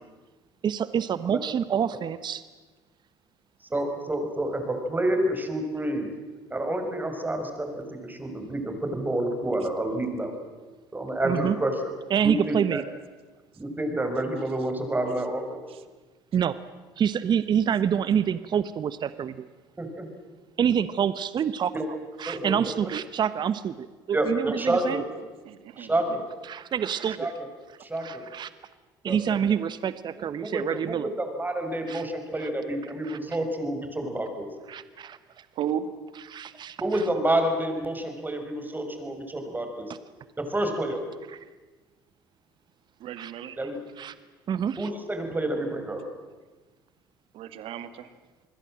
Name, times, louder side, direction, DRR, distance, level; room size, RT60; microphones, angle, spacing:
voice 1, 0.6-2.4 11.2-11.6 12.1-12.8 16.3-16.6 17.0-19.5 20.6-25.0 26.5-27.3 28.0-28.5 29.0-31.1 31.9-32.0 32.4-32.5 33.0-33.2 34.7-35.5 36.3-36.8 41.3-41.4 43.2-43.5 44.0-44.1 44.5-44.9, right 8 dB, 45° right, 15 dB, 1.0 m, -27 dB
voice 2, 3.7-6.1 6.5-10.3 10.9-11.7 12.2-12.8 13.6-15.6 19.8-20.1 21.7-21.9 22.3-22.6 24.1-25.1 25.8-26.2 27.2-27.3 27.8-28.3 29.1-29.4 30.2-34.4 36.8-39.9 40.4-41.0 43.6-43.8 44.8-46.0, right 1 dB, 15° right, 6 dB, 5.7 m, -29 dB
voice 3, 25.5-25.9 35.6-35.9 43.0-43.6 47.3-48.1, right 9 dB, 60° right, 12 dB, 2.0 m, -34 dB
27.5 x 21.0 x 7.7 m, 1.3 s
hypercardioid pair, 65°, 11 cm